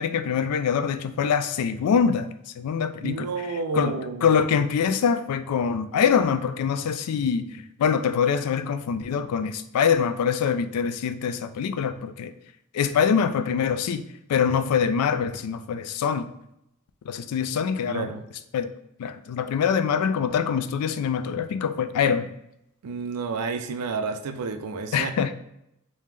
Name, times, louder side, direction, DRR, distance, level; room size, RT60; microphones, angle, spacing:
voice 1, 0.0-2.3 2.6-3.3 3.7-12.3 12.7-14.0 14.3-16.3 17.1-18.1 18.5-18.7 19.0-22.3 24.9-25.3, left 7 dB, 80° left, 11 dB, 0.3 m, -24 dB
voice 2, 3.0-4.3 17.9-18.3 22.8-25.1, right 4 dB, 90° right, 8 dB, 0.4 m, -30 dB
3.4 x 2.7 x 3.3 m, 0.81 s
head